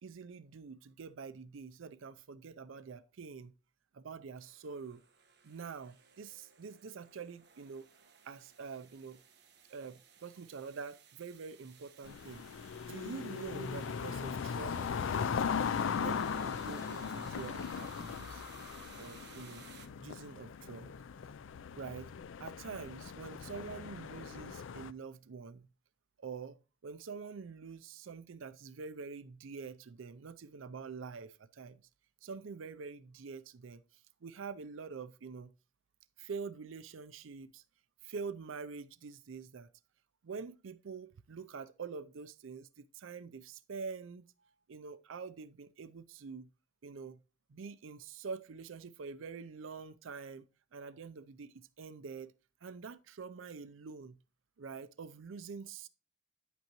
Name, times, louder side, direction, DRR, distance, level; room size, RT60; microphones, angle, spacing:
voice 1, 0.0-3.5 3.9-5.0 5.4-7.9 8.2-9.2 9.7-12.4 12.8-14.9 16.0-18.4 19.0-19.7 20.0-20.9 21.8-22.1 22.4-25.7 26.2-26.6 26.8-31.8 32.2-35.5 36.2-37.6 38.0-39.7 40.2-44.3 44.7-46.5 46.8-47.2 47.5-52.3 52.6-54.2 54.6-55.9, right 5 dB, 85° right, 0.5 m, -46 dB
sound 1, 4.4-19.9, right 7 dB, 55° right, 1.2 m, -59 dB
sound 2, 12.0-24.9, left 6 dB, 80° left, 0.4 m, -38 dB
10.0 x 8.2 x 3.0 m
head